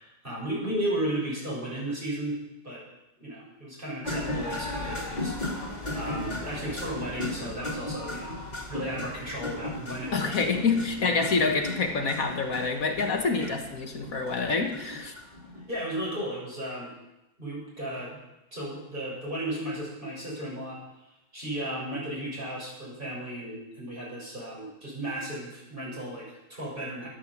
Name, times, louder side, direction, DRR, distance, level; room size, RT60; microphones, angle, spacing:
voice 1, 0.0-2.4 2.6-2.8 3.2-5.5 5.9-8.3 8.7-10.3 13.4-13.5 15.7-16.9 17.4-18.2 18.5-20.8 21.3-27.1, right 1 dB, 35° right, -5 dB, 7.0 m, -34 dB
sound 1, 4.0-15.9, left 2 dB, 30° left, 2.6 m, -36 dB
voice 2, 10.1-15.1, left 4 dB, 70° left, 4 dB, 1.8 m, -27 dB
12.5 x 12.0 x 7.3 m, 0.93 s
omnidirectional pair, 1.5 m